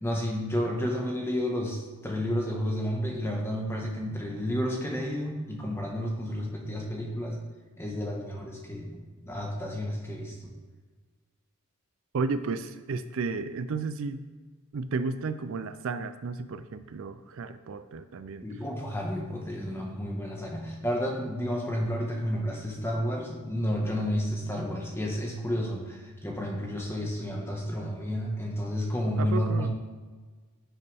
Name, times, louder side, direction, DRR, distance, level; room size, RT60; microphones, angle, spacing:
voice 1, 0.0-7.4 7.8-10.5 18.4-29.7, equal, 10° left, 0 dB, 1.3 m, -31 dB
voice 2, 12.1-14.3 14.7-18.4 29.2-29.7, right 4 dB, 60° right, 11 dB, 0.4 m, -33 dB
10.5 x 6.6 x 3.5 m, 1.4 s
head